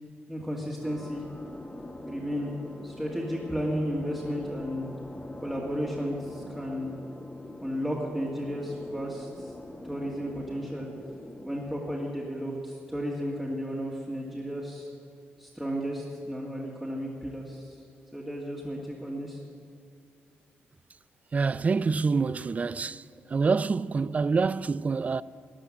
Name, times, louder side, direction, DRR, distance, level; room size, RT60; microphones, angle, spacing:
voice 1, 0.3-1.2 2.1-2.5 2.8-4.9 5.4-6.9 7.6-9.5 9.8-10.9 11.4-14.9 15.4-17.8 18.1-19.4, equal, 5° right, 2.0 m, -33 dB
sound 1, 0.8-11.6, left 1 dB, 20° left, 1.3 m, -43 dB
voice 2, 21.3-23.0 23.3-25.2, right 4 dB, 35° right, 0.3 m, -26 dB
13.5 x 10.0 x 7.4 m
cardioid pair, 80°, 4 cm